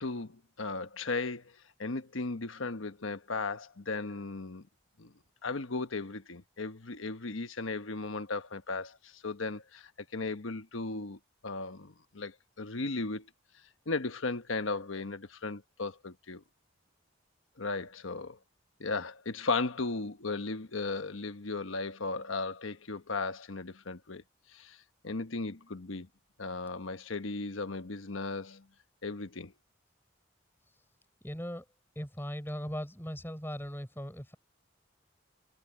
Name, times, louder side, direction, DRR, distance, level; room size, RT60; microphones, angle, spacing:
voice 1, 0.0-4.7 5.0-5.1 5.4-13.3 13.9-16.4 17.6-18.4 18.8-24.2 24.5-26.1 26.4-28.7 29.0-29.5, left 3 dB, 90° left, 1.2 m, -36 dB
voice 2, 31.2-31.6 32.0-34.3, equal, 10° left, 6.2 m, -38 dB
head